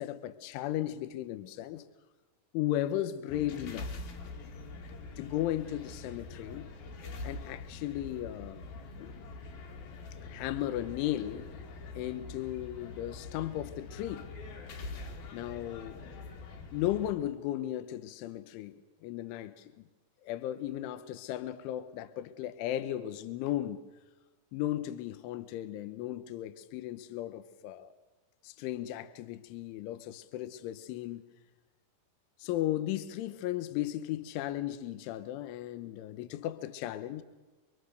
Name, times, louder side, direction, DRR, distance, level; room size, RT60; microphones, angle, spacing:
voice 1, 0.0-1.9 2.5-4.0 5.2-6.7 7.2-8.6 9.0-9.3 10.2-11.5 12.0-14.3 15.3-16.0 16.7-19.7 20.2-23.8 24.5-27.9 28.4-31.2 32.4-37.2, left 13 dB, 80° left, 3.3 m, -35 dB
sound 1, 3.3-17.1, left 3 dB, 55° left, 3.5 m, -44 dB
27.5 x 24.0 x 6.5 m
omnidirectional pair, 5.7 m